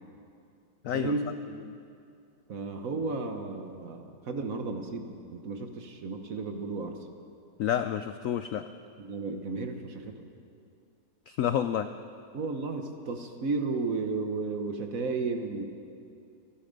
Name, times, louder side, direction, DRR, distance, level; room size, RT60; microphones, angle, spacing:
voice 1, 0.9-1.3 2.5-7.0 9.0-10.2 12.3-15.6, right 3 dB, 50° right, 5 dB, 1.4 m, -33 dB
voice 2, 7.6-8.6 11.3-11.9, left 10 dB, 90° left, 10 dB, 0.7 m, -29 dB
26.5 x 9.9 x 5.3 m, 2.5 s
omnidirectional pair, 2.0 m